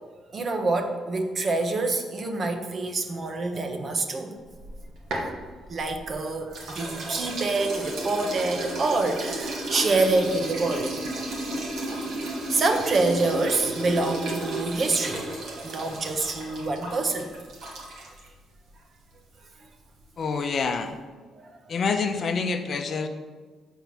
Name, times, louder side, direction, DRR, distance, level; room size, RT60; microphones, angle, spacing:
voice 1, 0.3-4.4 5.7-10.9 12.5-15.3 15.6-17.3 21.3-21.7, right 3 dB, 45° right, 5 dB, 1.0 m, -26 dB
sound 1, 4.5-6.1 6.5-18.3, right 1 dB, 80° right, 2.0 m, -33 dB
voice 2, 20.2-21.0 21.7-23.1, left 5 dB, 50° left, 7 dB, 0.7 m, -27 dB
6.8 x 4.6 x 6.0 m, 1.4 s
cardioid pair, 90°, 0 cm